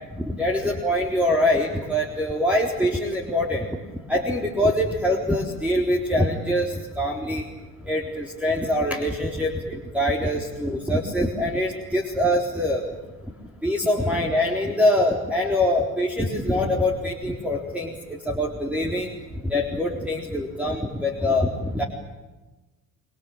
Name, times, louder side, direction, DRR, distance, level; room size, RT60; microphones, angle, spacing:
voice 1, 0.2-3.7 4.1-7.4 7.9-12.8 13.6-19.1 19.4-21.8, left 1 dB, 5° right, 0 dB, 3.9 m, -24 dB
27.5 x 21.0 x 9.0 m, 1.2 s
hypercardioid pair, 60°, 42 cm